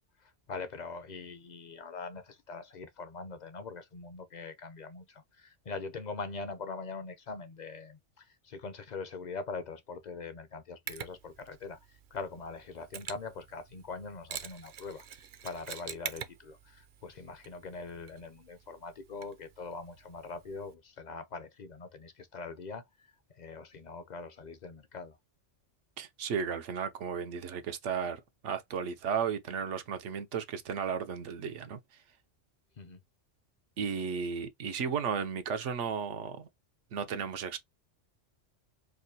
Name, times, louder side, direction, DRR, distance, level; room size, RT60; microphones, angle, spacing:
voice 1, 0.2-23.1 23.3-25.2 32.8-33.0, left 4 dB, 50° left, 0.6 m, -43 dB
Mechanisms, 10.9-20.7, right 9 dB, 55° right, 0.6 m, -47 dB
voice 2, 26.0-31.8 33.8-36.5 36.9-37.6, right 6 dB, 85° right, 1.1 m, -34 dB
4.8 x 2.2 x 2.7 m
omnidirectional pair, 1.2 m